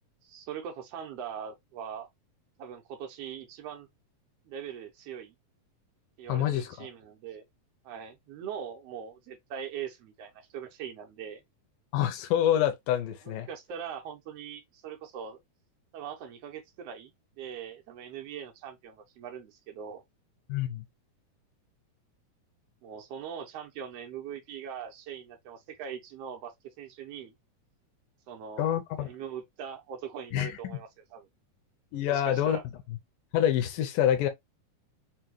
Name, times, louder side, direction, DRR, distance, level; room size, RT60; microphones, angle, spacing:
voice 1, 0.2-2.1 2.6-3.9 4.5-5.3 6.2-7.4 7.8-11.4 13.5-15.4 15.9-17.1 17.4-20.0 22.8-27.3 28.3-31.3 32.1-32.6, right 8 dB, 80° right, 1.4 m, -41 dB
voice 2, 6.3-6.9 11.9-13.5 20.5-20.8 28.6-29.1 30.3-30.8 31.9-32.6 33.3-34.3, left 11 dB, 85° left, 2.3 m, -27 dB
5.6 x 2.2 x 3.1 m
omnidirectional pair, 3.8 m